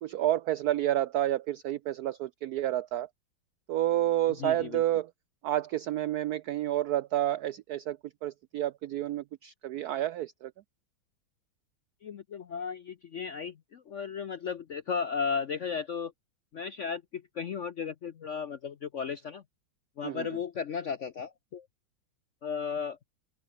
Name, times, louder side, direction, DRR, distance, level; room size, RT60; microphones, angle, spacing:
voice 1, 0.0-3.1 3.7-5.1 5.4-10.5 20.0-20.4, right 13 dB, 90° right, 0.8 m, -30 dB
voice 2, 4.4-4.8 12.0-16.1 16.5-19.4 20.0-21.7 22.4-23.0, left 6 dB, 65° left, 0.7 m, -35 dB
open air
omnidirectional pair, 2.2 m